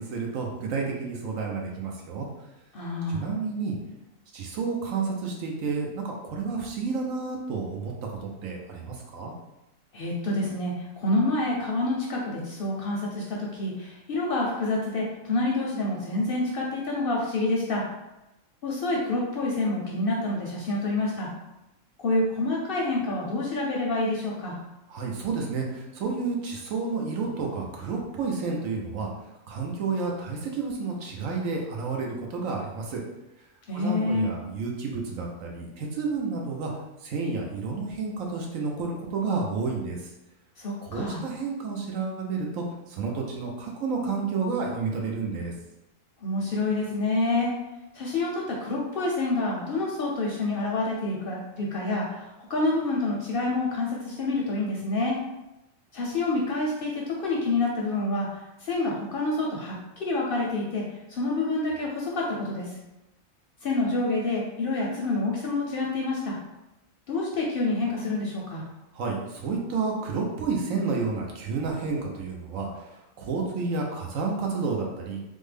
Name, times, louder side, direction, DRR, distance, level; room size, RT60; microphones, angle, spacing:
voice 1, 0.0-2.3 3.1-3.7 4.3-7.9 8.2-9.3 24.9-29.1 29.5-33.0 33.7-36.7 37.0-40.1 40.8-45.5 68.9-75.2, right 4 dB, 85° right, 0 dB, 1.1 m, -30 dB
voice 2, 2.7-3.2 9.9-17.8 18.6-21.3 22.0-24.6 33.7-34.3 40.6-41.2 46.2-47.5 47.9-55.2 55.9-62.7 63.6-66.4 67.1-68.6, left 2 dB, 60° left, -2 dB, 0.6 m, -27 dB
3.5 x 2.1 x 3.3 m, 0.92 s
omnidirectional pair, 1.4 m